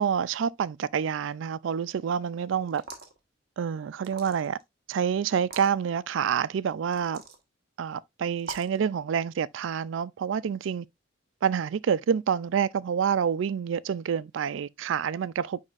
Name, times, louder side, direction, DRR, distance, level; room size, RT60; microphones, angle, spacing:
voice 1, 0.0-2.8 3.6-4.6 4.9-7.2 7.8-10.9 11.4-15.6, right 7 dB, 70° right, 0.3 m, -27 dB
sound 1, 2.7-3.2 4.0-4.6 5.4-5.7 6.9-7.4 8.4-8.8, right 3 dB, 50° right, 1.4 m, -42 dB
9.6 x 4.2 x 2.4 m
head